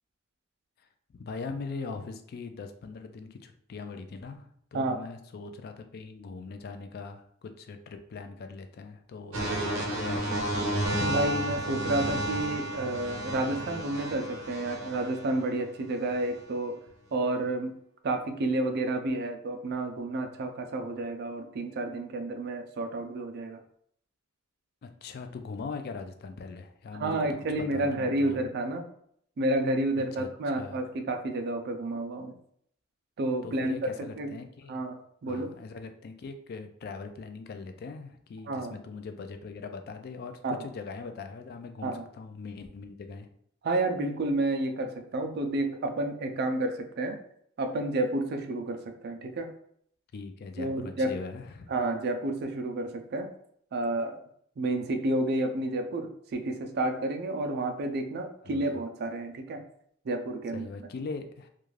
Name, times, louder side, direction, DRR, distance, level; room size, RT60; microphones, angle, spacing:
voice 1, 1.1-10.5 24.8-27.2 27.6-28.5 30.2-30.3 30.5-30.8 33.4-34.8 35.3-43.3 50.1-51.7 58.5-58.8 60.5-61.5, left 4 dB, 50° left, 7 dB, 0.3 m, -41 dB
sound 1, 9.3-15.4 16.1-16.3, right 1 dB, 70° right, 0.7 m, -32 dB
voice 2, 11.0-16.8 17.1-17.8 18.0-23.6 26.9-28.8 29.4-32.3 33.2-34.3 34.7-35.5 38.4-38.7 40.4-40.6 41.8-42.0 43.6-47.2 47.6-49.5 50.6-51.2 51.7-53.3 53.7-54.2 54.6-59.6 60.0-60.7, right 2 dB, 50° right, 6 dB, 0.4 m, -30 dB
2.4 x 2.3 x 3.1 m, 0.67 s
head